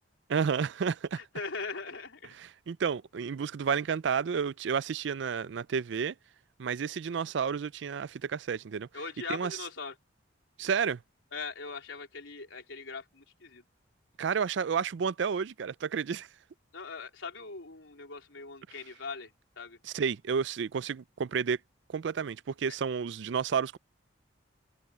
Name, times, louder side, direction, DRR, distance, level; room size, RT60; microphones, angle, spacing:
voice 1, 0.3-1.2 2.4-6.1 6.6-8.9 9.3-9.6 10.6-11.0 14.2-16.3 19.8-21.6 21.9-23.8, right 6 dB, 65° right, 0.4 m, -31 dB
voice 2, 1.2-2.4 8.9-9.9 11.3-13.6 16.7-19.3 19.6-19.8, left 4 dB, 90° left, 3.9 m, -40 dB
open air
head